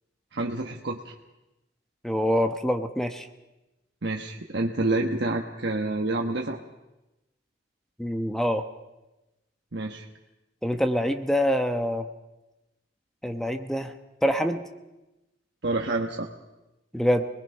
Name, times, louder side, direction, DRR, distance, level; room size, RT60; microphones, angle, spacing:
voice 1, 0.3-1.1 4.0-6.6 9.7-10.1 15.6-16.3, right 2 dB, 65° right, 1 dB, 1.3 m, -28 dB
voice 2, 2.0-3.3 8.0-8.6 10.6-12.1 13.2-13.9 14.2-14.6 16.9-17.3, equal, ahead, 7 dB, 1.0 m, -25 dB
26.5 x 20.5 x 5.6 m, 0.99 s
head